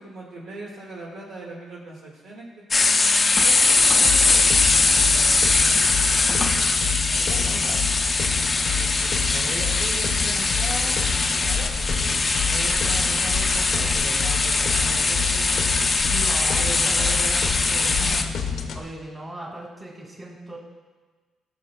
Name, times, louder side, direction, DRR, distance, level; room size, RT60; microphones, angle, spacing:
voice 1, 0.0-2.5 2.7-4.5 5.1-5.2 7.2-7.8 8.7-11.0 11.5-16.0 16.5-18.6, right 2 dB, 75° right, -3 dB, 1.9 m, -38 dB
sound 1, 2.7-18.2, left 3 dB, 30° left, 0.6 m, -21 dB
sound 2, 4.0-18.8, left 6 dB, 70° left, 0.7 m, -29 dB
voice 2, 5.1-5.4 16.1-17.3 18.7-20.6, right 1 dB, 20° right, -2 dB, 2.2 m, -38 dB
15.0 x 6.5 x 2.3 m, 1.4 s
cardioid pair, 90°, 0 cm